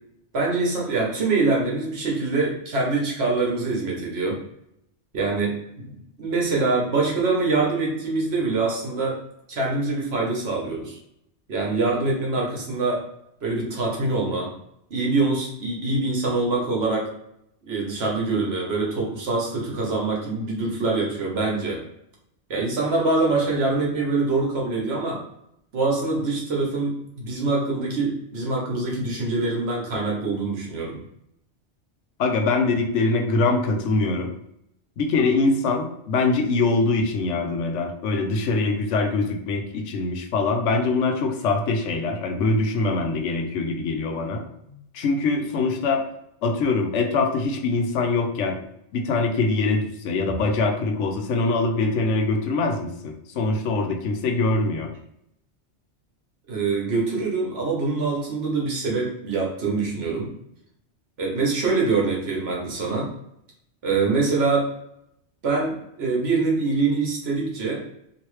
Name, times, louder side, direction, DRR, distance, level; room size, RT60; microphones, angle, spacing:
voice 1, 0.3-4.4 5.1-5.9 6.2-9.2 9.5-11.0 11.5-13.0 13.4-14.5 14.9-17.1 17.6-21.8 22.5-25.2 25.7-31.0 44.7-44.8 56.5-60.3 61.2-63.1 63.8-64.7 65.4-67.8, right 3 dB, 60° right, -2 dB, 1.1 m, -24 dB
voice 2, 32.2-34.3 35.0-44.4 44.9-46.0 46.4-48.6 48.9-54.9, left 3 dB, 85° left, 4 dB, 0.9 m, -23 dB
2.9 x 2.7 x 3.1 m, 0.77 s
omnidirectional pair, 1.2 m